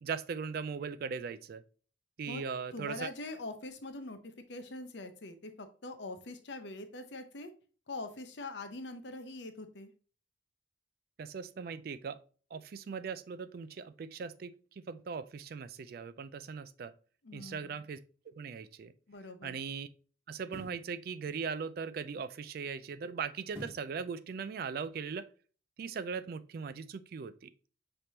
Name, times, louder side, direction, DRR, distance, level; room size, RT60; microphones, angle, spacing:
voice 1, 0.0-1.6 2.2-3.1 11.2-12.2 12.5-16.9 17.3-18.0 18.3-18.9 19.4-19.9 20.3-25.3 25.8-27.5, right 5 dB, 50° right, 0.3 m, -39 dB
voice 2, 2.7-7.5 7.9-9.9 17.2-17.8 19.1-19.6, left 2 dB, 65° left, 0.7 m, -43 dB
sound 1, 18.7-18.8 20.4-20.9 23.5-24.0 24.4-24.5, equal, 10° right, 1.4 m, -47 dB
5.8 x 3.3 x 2.7 m
head